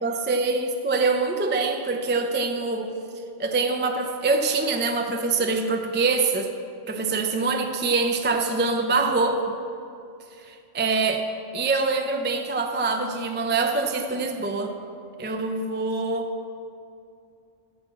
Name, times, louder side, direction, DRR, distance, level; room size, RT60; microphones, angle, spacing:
voice 1, 0.0-3.0 3.4-6.5 6.9-9.4 10.4-11.2 11.5-14.7 15.2-16.3, right 3 dB, 15° right, 4 dB, 0.4 m, -24 dB
9.9 x 6.5 x 7.6 m, 2.6 s
omnidirectional pair, 1.2 m